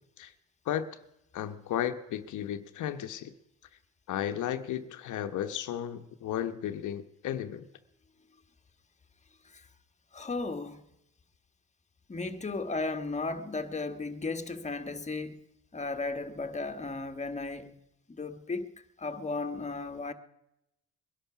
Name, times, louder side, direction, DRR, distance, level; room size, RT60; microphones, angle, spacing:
voice 1, 1.3-3.3 4.1-7.7, left 10 dB, 80° left, 1.0 m, -34 dB
voice 2, 10.1-10.8 12.1-15.4 15.7-17.7 18.1-18.7 19.0-20.1, left 3 dB, 25° left, 1.4 m, -35 dB
21.5 x 11.5 x 5.9 m
cardioid pair, 90°, 30 cm